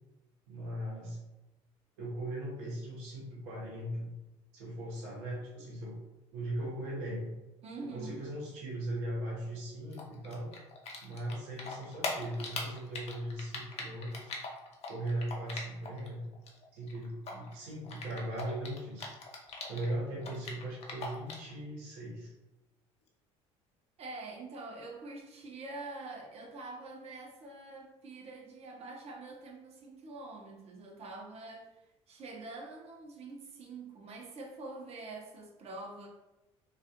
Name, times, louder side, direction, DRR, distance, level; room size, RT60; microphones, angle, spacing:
voice 1, 0.5-1.2 2.0-4.1 4.5-6.0 6.3-7.3 7.8-10.5 11.0-14.3 14.9-16.2 16.7-19.1 19.7-22.3, right 1 dB, 80° right, -5 dB, 0.9 m, -38 dB
voice 2, 7.6-8.3 24.0-31.7 32.1-36.1, right 2 dB, 50° right, 0 dB, 0.7 m, -45 dB
Typing, 9.9-11.3 11.6-16.1 16.3-19.9 20.2-21.5, left 3 dB, 50° left, 0.7 m, -40 dB
2.3 x 2.3 x 2.8 m, 0.99 s
supercardioid pair, 75°, 14 cm